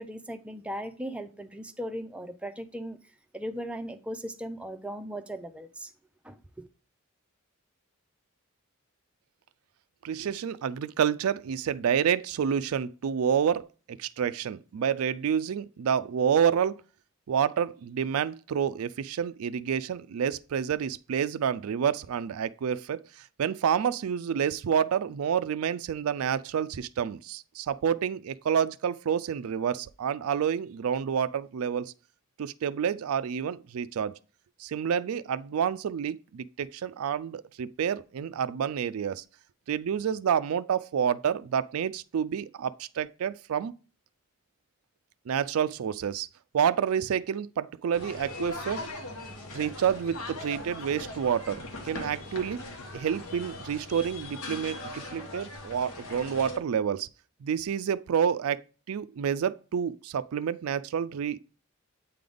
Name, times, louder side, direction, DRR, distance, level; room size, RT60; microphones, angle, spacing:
voice 1, 0.0-3.0 3.3-5.9 6.2-6.7, equal, 5° right, 0.5 m, -38 dB
voice 2, 10.0-16.8 17.3-23.0 23.4-31.9 32.4-34.1 34.6-39.2 39.7-43.7 45.3-46.3 46.5-48.8 49.5-52.6 52.9-57.1 57.4-61.4, right 8 dB, 90° right, 0.4 m, -29 dB
sound 1, 47.9-56.6, left 2 dB, 80° left, 1.2 m, -40 dB
8.4 x 3.8 x 3.5 m
head